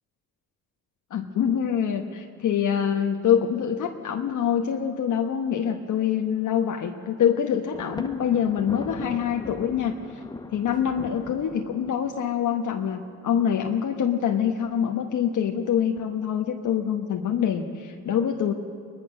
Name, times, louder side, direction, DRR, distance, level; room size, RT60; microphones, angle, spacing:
voice 1, 1.1-10.2 10.5-18.5, left 8 dB, 55° left, 2 dB, 1.2 m, -25 dB
Thunder, 7.7-12.3, left 3 dB, 10° left, 0.7 m, -39 dB
21.5 x 20.0 x 6.5 m, 2.6 s
cardioid pair, 105°, 36 cm